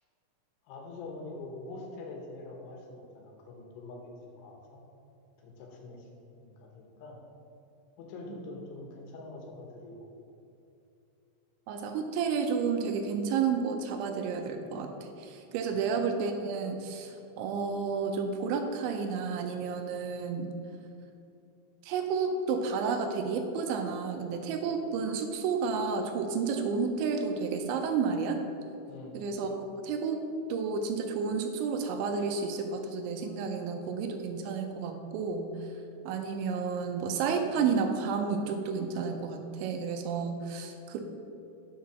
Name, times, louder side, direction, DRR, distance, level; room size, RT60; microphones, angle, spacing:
voice 1, 0.6-4.0 4.4-4.8 5.4-7.2 8.0-10.1 15.7-15.8 28.9-29.2, left 2 dB, 80° left, 1 dB, 3.5 m, -45 dB
voice 2, 11.7-20.5 21.8-28.4 29.1-30.2 30.5-35.5 36.1-41.0, right 5 dB, 85° right, 5 dB, 2.9 m, -31 dB
7.5 x 5.7 x 5.9 m, 2.7 s
omnidirectional pair, 5.5 m